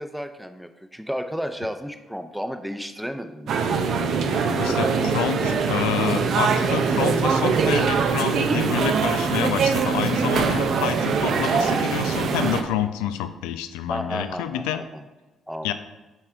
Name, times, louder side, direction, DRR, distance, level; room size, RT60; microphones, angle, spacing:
voice 1, 0.0-3.7 4.6-4.8 13.9-15.0 15.5-15.7, equal, ahead, 7 dB, 0.7 m, -33 dB
sound 1, 3.5-12.6, right 5 dB, 65° right, 0.6 m, -22 dB
voice 2, 4.6-14.8 15.6-15.7, left 10 dB, 80° left, 10 dB, 0.3 m, -28 dB
7.5 x 3.4 x 4.5 m, 1.1 s
hypercardioid pair, 45°, 0 cm